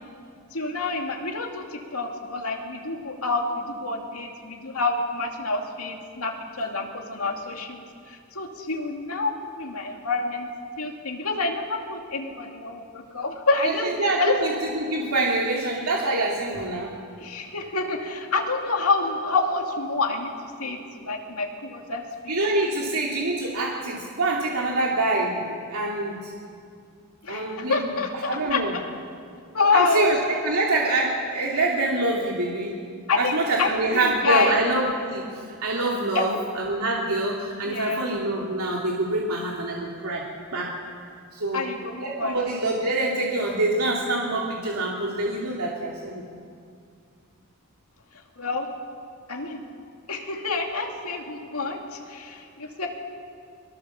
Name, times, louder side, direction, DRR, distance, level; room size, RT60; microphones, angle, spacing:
voice 1, 0.5-10.5 10.8-13.9 14.2-14.3 17.2-22.0 27.2-28.6 29.5-30.1 33.1-34.5 36.1-36.4 37.6-38.1 41.5-42.4 48.4-48.7 49.3-49.6 50.1-52.9, left 3 dB, 85° left, 2 dB, 2.6 m, -27 dB
voice 2, 13.6-16.9 22.3-26.3 27.3-28.7 29.7-30.2 30.4-32.7 33.2-35.2 35.6-40.2 40.5-40.7 41.3-41.7 42.0-46.2, right 2 dB, 90° right, -3 dB, 2.6 m, -25 dB
22.5 x 22.0 x 7.2 m, 2.3 s
head